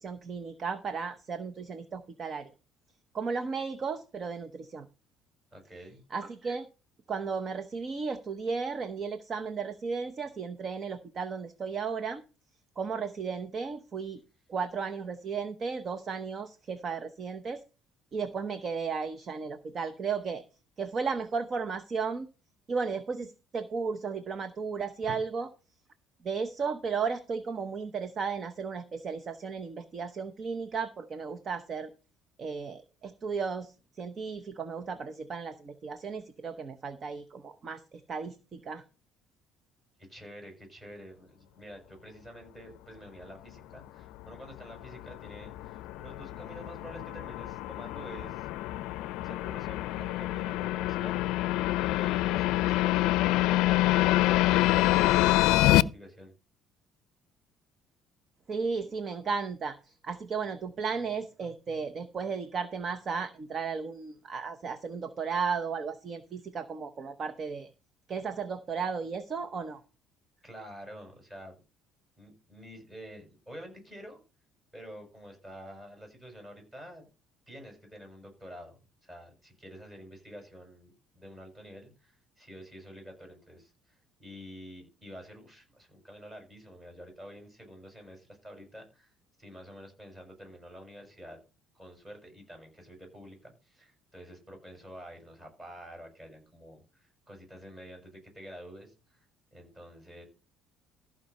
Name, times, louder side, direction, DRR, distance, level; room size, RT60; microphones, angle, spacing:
voice 1, 0.0-2.5 3.1-4.9 6.1-6.7 7.1-12.2 12.8-14.2 14.5-17.6 18.1-20.4 20.8-22.3 22.7-25.5 26.2-31.9 32.4-38.8 58.5-67.7 68.1-69.8, right 5 dB, 35° right, 10 dB, 0.9 m, -34 dB
voice 2, 5.5-6.0 25.0-25.2 40.1-48.5 48.9-51.4 51.8-53.2 53.6-56.3 70.4-71.5 72.2-74.2 74.7-77.1 77.5-80.9 81.1-89.1 89.4-91.4 91.7-99.3 99.5-100.2, equal, 20° right, 3 dB, 6.6 m, -48 dB
sound 1, 44.3-55.8, left 16 dB, 85° left, 0.5 m, -26 dB
14.5 x 5.3 x 5.5 m, 0.32 s
cardioid pair, 140°, 0 cm